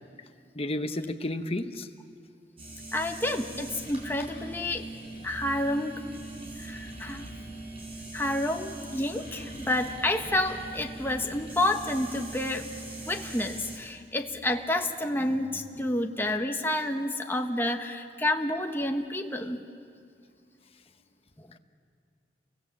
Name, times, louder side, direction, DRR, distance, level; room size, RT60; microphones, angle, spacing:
voice 1, 0.5-1.9 15.7-15.9, left 1 dB, 35° left, 8 dB, 1.0 m, -32 dB
sound 1, 2.6-13.8, right 2 dB, 35° right, 5.7 m, -41 dB
voice 2, 2.9-4.9 5.2-6.0 6.6-7.2 8.1-12.8 13.1-19.6 21.4-21.5, left 1 dB, 15° left, 3 dB, 1.3 m, -29 dB
30.0 x 24.0 x 7.4 m, 2.3 s
head